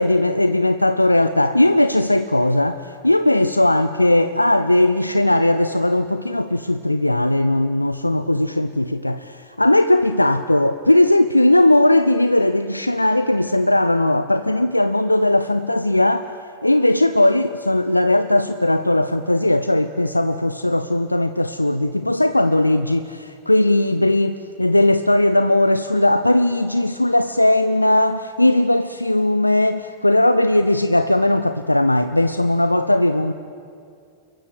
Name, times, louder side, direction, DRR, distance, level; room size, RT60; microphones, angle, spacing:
voice 1, 0.0-16.3 16.6-33.3, left 1 dB, 85° left, 0.6 m, -18 dB
29.0 x 22.5 x 8.7 m
figure-of-eight pair, 90°, 0 cm